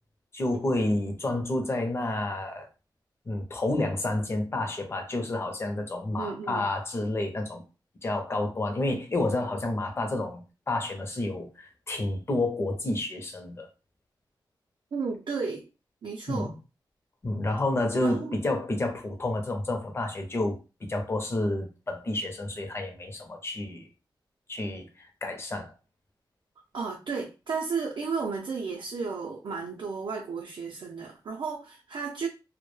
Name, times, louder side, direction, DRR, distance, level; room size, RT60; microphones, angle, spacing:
voice 1, 0.3-2.7 3.3-7.6 8.0-13.7 16.3-16.5 17.2-23.9 24.5-25.7, left 2 dB, 30° left, 4 dB, 0.6 m, -30 dB
voice 2, 6.2-6.7 14.9-15.7 16.0-16.5 18.0-18.4 26.7-32.3, right 5 dB, 70° right, -1 dB, 0.5 m, -33 dB
2.2 x 2.1 x 3.1 m, 0.31 s
wide cardioid pair, 150°, 8 cm